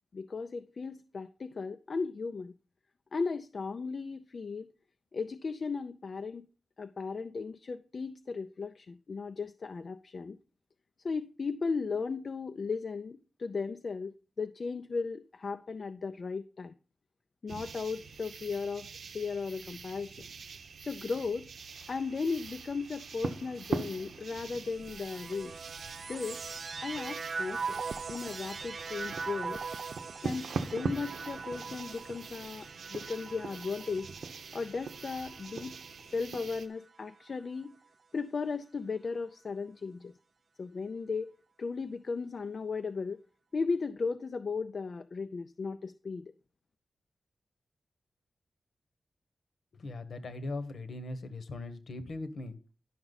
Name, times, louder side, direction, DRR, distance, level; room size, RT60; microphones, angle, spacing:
voice 1, 0.1-2.5 3.1-4.7 5.1-6.5 6.8-10.4 11.0-16.7 17.4-18.9 19.1-20.3 20.8-21.5 21.9-25.5 26.1-26.4 26.8-27.8 28.1-29.6 30.2-34.1 34.5-35.7 36.1-37.7 38.1-40.1 40.6-43.2 43.5-46.3, left 4 dB, 45° left, 0.4 m, -36 dB
sound 1, 17.5-36.7, right 5 dB, 85° right, 0.8 m, -42 dB
sound 2, 24.7-36.2 36.9-37.7, right 4 dB, 50° right, 0.4 m, -41 dB
voice 2, 49.7-52.6, left 2 dB, 65° left, 1.1 m, -39 dB
11.0 x 5.9 x 4.0 m
wide cardioid pair, 155°, 0 cm